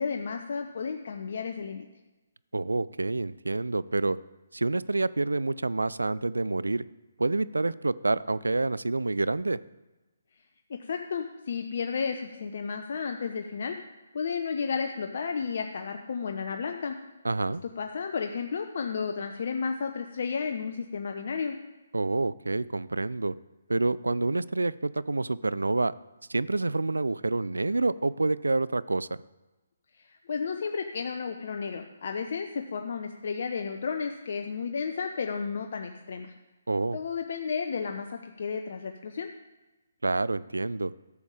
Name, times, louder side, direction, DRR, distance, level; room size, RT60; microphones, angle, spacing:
voice 1, 0.0-1.9 10.7-13.8 14.1-17.0 17.6-21.6 30.1-36.3 36.9-39.3, left 5 dB, 55° left, 5 dB, 0.8 m, -32 dB
voice 2, 2.5-4.2 4.5-6.8 7.2-9.6 17.2-17.6 21.9-23.3 23.7-25.9 26.3-29.1 36.7-37.0 40.0-40.9, right 2 dB, 85° right, 19 dB, 0.4 m, -27 dB
13.0 x 7.2 x 4.9 m, 1.1 s
figure-of-eight pair, 140°, 0 cm